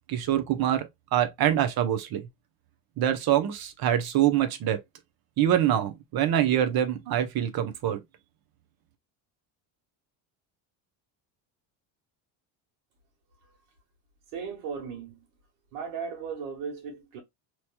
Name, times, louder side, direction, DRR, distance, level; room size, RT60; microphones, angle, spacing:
voice 1, 0.1-2.2 3.0-4.8 5.4-8.0, right 11 dB, 45° right, 0.8 m, -25 dB
voice 2, 14.3-15.3 15.7-17.2, right 6 dB, 80° right, 1.7 m, -36 dB
3.0 x 3.0 x 2.2 m
cardioid pair, 120°, 50 cm